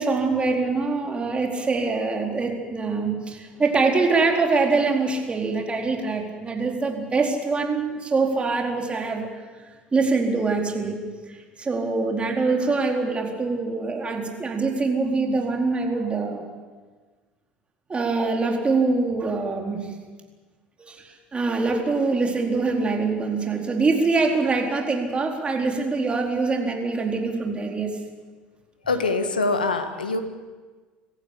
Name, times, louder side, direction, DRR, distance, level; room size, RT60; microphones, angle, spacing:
voice 1, 0.0-9.3 9.9-11.0 11.3-16.4 17.9-19.9 20.8-28.0, right 3 dB, 25° right, 1 dB, 4.3 m, -24 dB
voice 2, 28.8-30.2, left 3 dB, 85° left, 8 dB, 1.6 m, -24 dB
26.5 x 15.0 x 8.6 m, 1.4 s
figure-of-eight pair, 65°, 5 cm